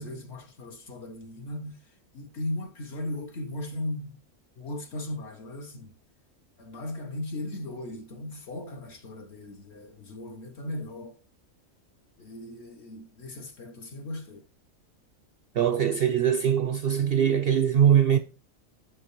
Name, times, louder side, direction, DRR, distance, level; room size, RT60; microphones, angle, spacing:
voice 1, 0.0-4.2 4.6-5.9 6.6-11.2 12.2-14.4, left 1 dB, 55° left, 1.1 m, -37 dB
voice 2, 15.5-18.2, right 9 dB, 65° right, 0.6 m, -22 dB
6.9 x 6.1 x 3.1 m
omnidirectional pair, 1.4 m